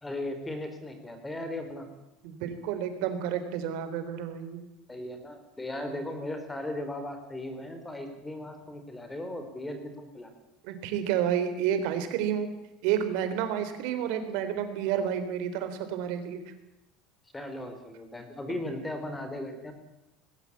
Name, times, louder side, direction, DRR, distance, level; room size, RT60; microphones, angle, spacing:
voice 1, 0.0-1.9 4.9-10.3 17.3-19.7, left 1 dB, 10° left, 7 dB, 4.1 m, -37 dB
voice 2, 2.2-4.6 10.6-12.5 12.8-16.4, right 9 dB, 70° right, 9 dB, 3.7 m, -30 dB
19.5 x 17.0 x 8.6 m, 0.90 s
supercardioid pair, 130°, 0 cm